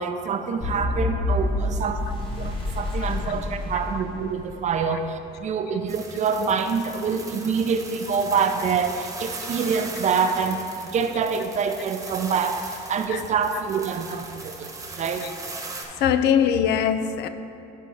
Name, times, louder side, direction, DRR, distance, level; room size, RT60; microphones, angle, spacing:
voice 1, 0.0-12.6 12.9-15.3, right 6 dB, 45° right, 0.5 m, -26 dB
sound 1, 0.6-4.7, left 2 dB, 30° left, 1.3 m, -28 dB
sound 2, 5.9-15.8, right 3 dB, 20° right, 1.1 m, -39 dB
voice 2, 16.0-17.3, left 8 dB, 75° left, 0.4 m, -21 dB
10.5 x 3.7 x 4.1 m
cardioid pair, 110°, 17 cm